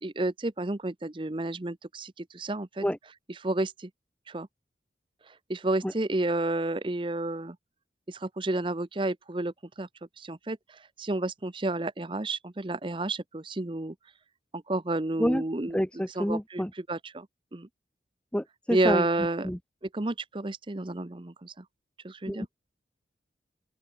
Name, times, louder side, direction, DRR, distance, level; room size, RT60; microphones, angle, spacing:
voice 1, 0.0-2.9 3.3-3.9 4.3-4.5 5.3-7.6 8.1-9.9 10.2-13.9 14.5-15.8 16.1-17.3 17.5-17.7 18.7-19.5 19.9-21.6 22.0-22.5, right 2 dB, 30° right, 0.7 m, -31 dB
voice 2, 15.7-16.7 18.3-19.1 19.4-19.6 22.3-22.5, equal, 5° left, 0.9 m, -28 dB
open air
head